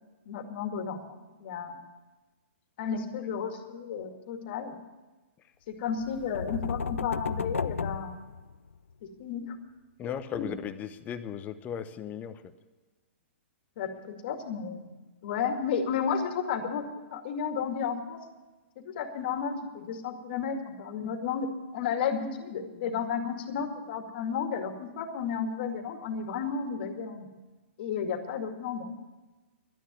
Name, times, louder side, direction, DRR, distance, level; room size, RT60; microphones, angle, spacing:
voice 1, 0.3-1.0 1.4-1.8 2.8-4.8 5.7-8.2 9.2-9.6 10.0-10.5 13.8-15.0 15.2-18.2 18.8-27.3 27.8-28.9, left 6 dB, 50° left, 5 dB, 2.1 m, -33 dB
sound 1, 6.0-8.9, left 5 dB, 90° left, 0.4 m, -34 dB
voice 2, 10.0-12.5, left 8 dB, 25° left, 10 dB, 0.9 m, -36 dB
12.0 x 10.0 x 9.5 m, 1.2 s
hypercardioid pair, 125°, 7 cm